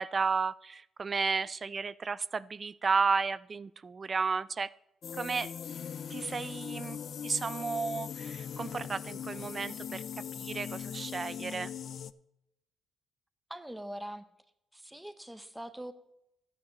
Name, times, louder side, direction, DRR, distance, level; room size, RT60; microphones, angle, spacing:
voice 1, 0.0-4.7 5.1-5.5 6.1-11.7, right 5 dB, 35° right, 19 dB, 0.3 m, -33 dB
sound 1, 5.0-12.1, left 8 dB, 55° left, 0.4 m, -40 dB
voice 2, 13.5-14.2 14.7-15.9, right 1 dB, 5° right, 11 dB, 0.9 m, -42 dB
14.0 x 9.5 x 3.0 m, 0.86 s
cardioid pair, 90°, 0 cm